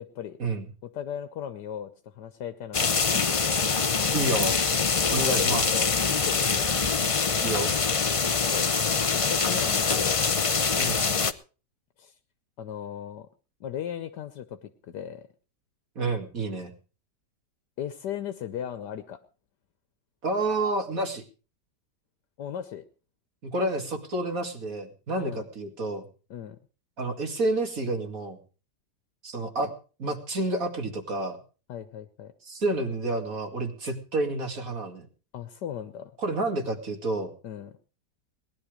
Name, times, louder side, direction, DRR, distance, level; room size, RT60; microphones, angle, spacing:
voice 1, 0.0-0.4 0.8-3.4 5.4-6.7 8.2-8.7 9.1-10.3 12.0-12.1 12.6-13.3 13.6-15.3 17.8-19.2 22.4-22.8 25.2-25.4 26.3-26.6 31.7-32.3 35.3-36.1 37.4-37.7, left 9 dB, 80° left, 10 dB, 1.5 m, -37 dB
sound 1, 2.7-11.3, left 5 dB, 50° left, 0.4 m, -24 dB
voice 2, 4.1-4.6 5.1-5.8 7.4-7.7 10.8-11.0 16.0-16.7 20.2-21.2 23.4-26.1 27.0-28.4 29.2-29.7 30.0-31.4 32.4-35.1 36.2-37.3, right 2 dB, 55° right, 4 dB, 2.8 m, -29 dB
19.0 x 11.5 x 5.0 m, 0.37 s
omnidirectional pair, 1.8 m